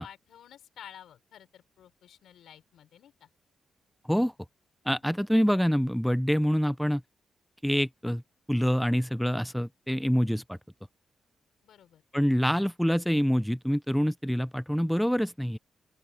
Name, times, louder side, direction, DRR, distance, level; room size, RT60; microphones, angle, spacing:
voice 1, 0.0-3.3 11.6-12.0, left 10 dB, 90° left, 5.2 m, -51 dB
voice 2, 4.9-7.0 7.6-8.2 8.5-10.6 12.1-15.6, equal, ahead, 0.5 m, -26 dB
open air
wide cardioid pair, 150°, 0 cm